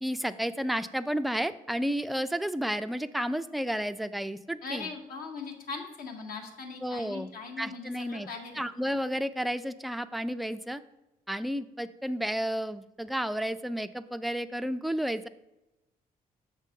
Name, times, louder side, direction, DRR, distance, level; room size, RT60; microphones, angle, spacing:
voice 1, 0.0-4.9 6.8-7.3 7.6-8.3 8.6-10.8 11.3-15.3, equal, ahead, 11 dB, 0.3 m, -32 dB
voice 2, 4.6-8.6, left 4 dB, 70° left, 2 dB, 1.4 m, -40 dB
6.7 x 3.7 x 6.3 m, 0.96 s
cardioid pair, 105°, 16 cm